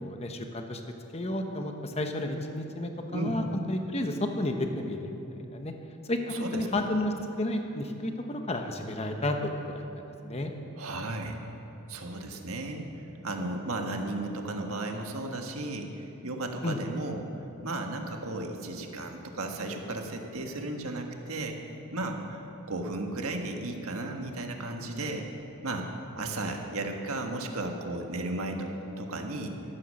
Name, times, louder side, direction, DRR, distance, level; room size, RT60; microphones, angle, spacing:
voice 1, 0.0-0.8 1.1-5.2 5.5-5.7 6.1-10.5 16.6-16.8, left 1 dB, 30° left, 4 dB, 1.0 m, -32 dB
voice 2, 6.3-6.9 10.8-11.4 11.9-17.2 17.6-21.6 21.9-25.3 25.6-25.9 26.1-29.5, right 2 dB, 70° right, 3 dB, 1.5 m, -34 dB
13.5 x 13.0 x 6.5 m, 2.9 s
head